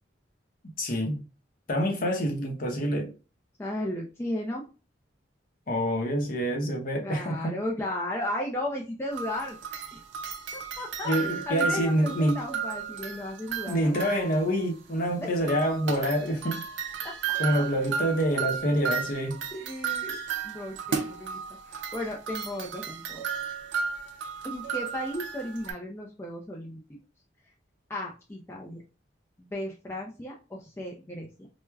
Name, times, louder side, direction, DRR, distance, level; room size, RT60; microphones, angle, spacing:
voice 1, 0.8-1.2 1.7-3.1 5.7-7.6 11.1-12.4 13.7-16.6 17.4-19.4, equal, 45° left, 0.7 m, -27 dB
voice 2, 3.6-4.6 7.0-9.6 9.9-10.0 10.5-14.1 15.2-15.3 17.0-17.4 19.5-21.4 21.7-23.2 24.4-26.8 27.9-28.8 29.4-31.3, left 1 dB, 15° left, 0.4 m, -35 dB
sound 1, 9.1-14.5 15.5-25.7, right 6 dB, 75° right, 0.5 m, -34 dB
4.5 x 2.1 x 2.2 m
head